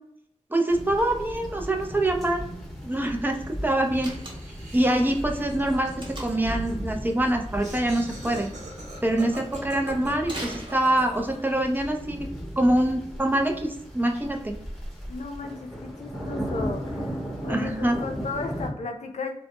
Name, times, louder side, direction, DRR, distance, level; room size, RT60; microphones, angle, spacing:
voice 1, 0.5-2.4 2.8-4.2 4.7-5.9 6.2-8.5 9.0-12.3 12.6-14.5 17.5-18.0, right 1 dB, 15° right, 3 dB, 0.4 m, -25 dB
sound 1, 0.7-18.7, equal, ahead, 0.8 m, -37 dB
Laughter, 3.9-11.5, right 1 dB, 90° right, 0.8 m, -43 dB
Slam, 4.0-4.7 6.0-6.6 10.2-11.3, right 1 dB, 40° right, 0.9 m, -39 dB
voice 2, 15.1-19.3, left 4 dB, 75° left, 4 dB, 0.4 m, -35 dB
2.1 x 2.0 x 2.9 m, 0.73 s
wide cardioid pair, 55°, 12 cm